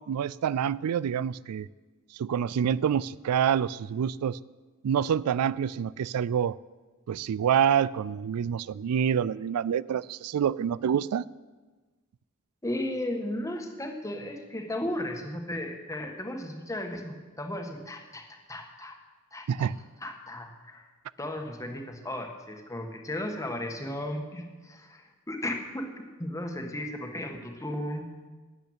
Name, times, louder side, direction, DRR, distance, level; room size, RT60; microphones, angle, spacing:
voice 1, 0.0-1.7 2.1-4.4 4.8-6.6 7.1-11.2 19.5-19.8, right 8 dB, 90° right, 21 dB, 0.3 m, -27 dB
voice 2, 12.6-18.9 19.3-19.7 20.0-20.8 21.2-25.9 26.2-28.0, left 1 dB, 15° left, 3 dB, 1.6 m, -35 dB
12.5 x 8.1 x 8.8 m, 1.3 s
head